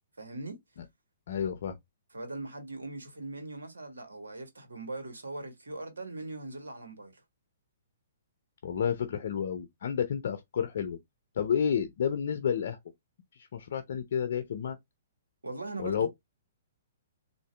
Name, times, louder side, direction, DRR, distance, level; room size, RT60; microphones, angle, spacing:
voice 1, 0.2-0.6 2.1-7.2 15.4-16.1, right 2 dB, 85° right, 1.3 m, -40 dB
voice 2, 1.3-1.8 8.6-11.0 11.4-12.8 13.5-14.8 15.8-16.1, left 7 dB, 65° left, 0.6 m, -30 dB
3.7 x 2.6 x 3.3 m
hypercardioid pair, 130°, 0 cm